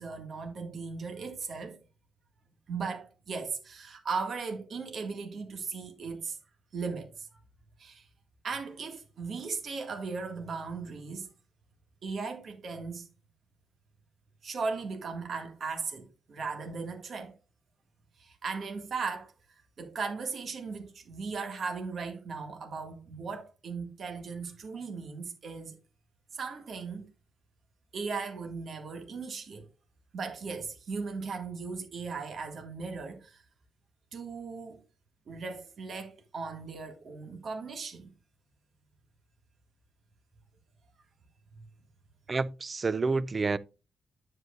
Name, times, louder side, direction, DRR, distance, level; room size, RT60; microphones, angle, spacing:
voice 1, 0.0-1.8 2.7-6.4 6.7-7.3 7.8-8.1 8.4-11.3 12.0-13.1 14.4-17.3 18.2-19.3 19.8-25.8 26.3-27.1 27.9-29.7 30.1-33.4 34.1-34.8 35.3-38.1, right 4 dB, 55° right, 2.0 m, -37 dB
voice 2, 42.3-43.6, right 4 dB, 30° right, 0.3 m, -29 dB
9.4 x 8.0 x 2.5 m
wide cardioid pair, 140°, 0 cm